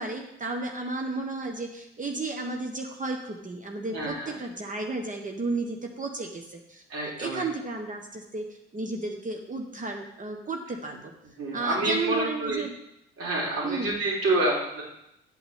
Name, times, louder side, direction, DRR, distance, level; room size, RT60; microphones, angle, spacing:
voice 1, 0.0-6.8 7.2-11.1 11.5-12.7 13.6-13.9, right 3 dB, 25° right, 3 dB, 1.3 m, -33 dB
voice 2, 3.9-4.3 6.9-7.5 11.4-12.6 13.2-14.8, right 2 dB, 50° right, -4 dB, 4.1 m, -28 dB
10.5 x 8.6 x 3.6 m, 0.81 s
figure-of-eight pair, 50°, 30 cm